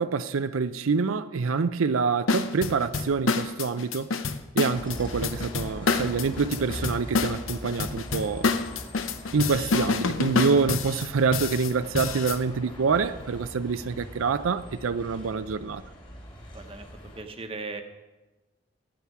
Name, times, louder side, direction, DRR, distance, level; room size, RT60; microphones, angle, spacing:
voice 1, 0.0-4.1 4.5-8.5 9.3-15.8, right 5 dB, 90° right, 0.5 m, -26 dB
sound 1, 2.3-12.4, left 4 dB, 80° left, 0.8 m, -28 dB
Bus, 4.7-17.2, equal, 25° left, 2.3 m, -41 dB
voice 2, 16.5-16.8 17.1-17.8, right 3 dB, 25° right, 1.0 m, -37 dB
18.0 x 8.6 x 4.8 m
head